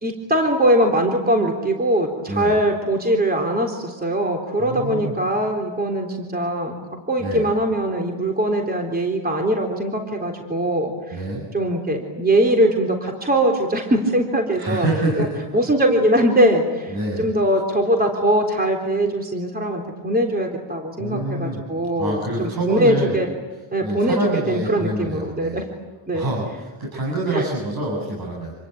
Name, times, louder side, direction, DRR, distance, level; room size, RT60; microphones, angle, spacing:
voice 1, 0.0-6.8 7.1-11.2 11.5-14.9 15.2-15.3 15.5-23.3 23.7-24.2 24.5-25.6 26.1-26.3 27.3-27.4, right 1 dB, 20° right, 2 dB, 3.8 m, -21 dB
voice 2, 4.6-5.2 7.2-7.5 11.1-11.4 14.6-15.7 16.9-17.2 21.0-21.6 22.0-23.1 23.8-25.6 26.1-28.5, right 1 dB, 45° right, -2 dB, 7.7 m, -26 dB
27.5 x 21.5 x 9.2 m, 1.2 s
cardioid pair, 120°, 49 cm